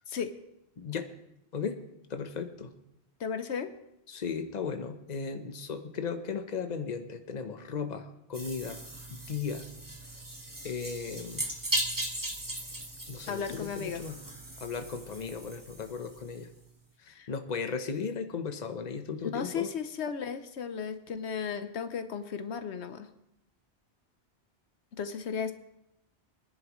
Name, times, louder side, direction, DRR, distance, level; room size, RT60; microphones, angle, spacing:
voice 1, 0.8-1.1 1.5-1.8 2.1-2.7 4.1-8.8 9.1-9.7 10.6-11.5 13.1-14.2 14.6-16.5 17.0-19.7, left 5 dB, 40° left, 7 dB, 1.0 m, -36 dB
voice 2, 3.2-3.7 13.3-14.0 17.1-17.3 19.2-23.1 25.0-25.5, left 7 dB, 85° left, 9 dB, 1.1 m, -35 dB
sound 1, 8.3-16.5, right 1 dB, 20° right, 1.4 m, -38 dB
23.5 x 10.5 x 3.1 m, 0.83 s
omnidirectional pair, 1.1 m